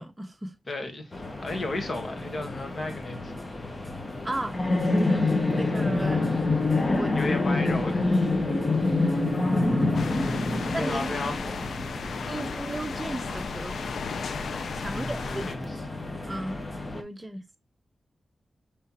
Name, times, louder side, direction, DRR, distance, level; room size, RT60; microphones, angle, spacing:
voice 1, 0.0-0.5 4.2-4.6 5.1-5.2 5.6-6.3 7.0-7.2 10.7-11.3 12.3-13.8 14.7-15.7 16.3-16.6 16.9-17.4, right 1 dB, 15° right, 0.8 m, -35 dB
voice 2, 0.7-3.3 5.5-5.7 7.1-8.1 10.8-11.7 14.8-15.8, left 2 dB, 50° left, 1.4 m, -34 dB
sound 1, 1.1-17.0, left 2 dB, 30° left, 0.9 m, -28 dB
sound 2, 9.9-15.5, left 5 dB, 85° left, 0.4 m, -35 dB
5.6 x 3.2 x 2.8 m
wide cardioid pair, 80°, 0 cm